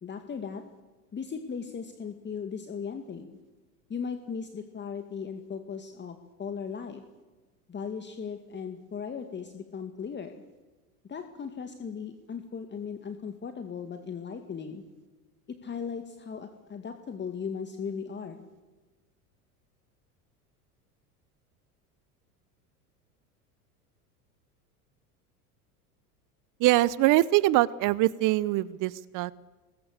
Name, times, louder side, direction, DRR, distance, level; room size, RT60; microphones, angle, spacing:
voice 1, 0.0-0.6 1.1-3.3 3.9-7.0 7.7-10.3 11.0-14.8 15.5-18.5, left 6 dB, 25° left, 6 dB, 2.2 m, -37 dB
voice 2, 26.6-29.3, right 17 dB, 40° right, 21 dB, 0.8 m, -23 dB
25.5 x 21.0 x 6.8 m, 1.2 s
hypercardioid pair, 80°, 46 cm